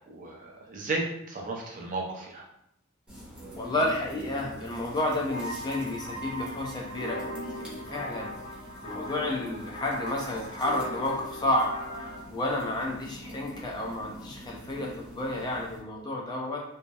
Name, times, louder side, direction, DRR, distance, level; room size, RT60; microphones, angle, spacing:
voice 1, 0.1-2.4, right 2 dB, 40° right, -1 dB, 0.5 m, -34 dB
sound 1, 3.1-15.8, equal, 5° right, 0.8 m, -46 dB
voice 2, 3.6-8.3 8.8-11.7 12.3-16.6, left 1 dB, 20° left, -1 dB, 0.4 m, -31 dB
sound 2, 5.3-12.2, equal, 70° left, 1.0 m, -39 dB
2.7 x 2.0 x 2.2 m, 0.76 s
head